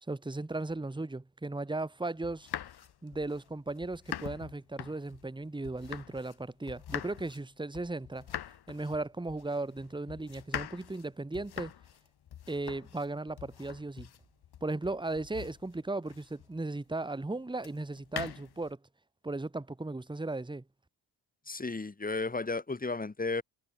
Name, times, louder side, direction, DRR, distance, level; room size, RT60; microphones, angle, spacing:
voice 1, 0.1-2.5 3.0-8.3 8.7-11.7 12.5-14.1 14.6-18.8 19.2-20.6, right 2 dB, 10° right, 1.5 m, -36 dB
sound 1, 2.2-6.4 6.7-16.6 17.6-18.7, left 10 dB, 60° left, 1.3 m, -44 dB
voice 2, 21.5-23.4, left 3 dB, 20° left, 1.6 m, -33 dB
cardioid pair, 70°, 43 cm